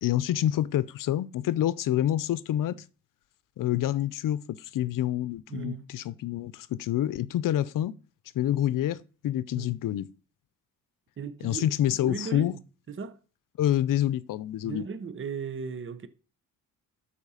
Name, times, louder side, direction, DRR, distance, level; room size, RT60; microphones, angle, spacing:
voice 1, 0.0-2.8 3.6-8.0 8.3-10.1 11.4-12.5 13.6-14.8, left 12 dB, 75° left, 0.6 m, -27 dB
voice 2, 5.5-5.9 9.5-9.8 11.2-13.2 14.6-16.1, right 6 dB, 40° right, 0.9 m, -37 dB
12.0 x 4.3 x 5.6 m
cardioid pair, 105°, 33 cm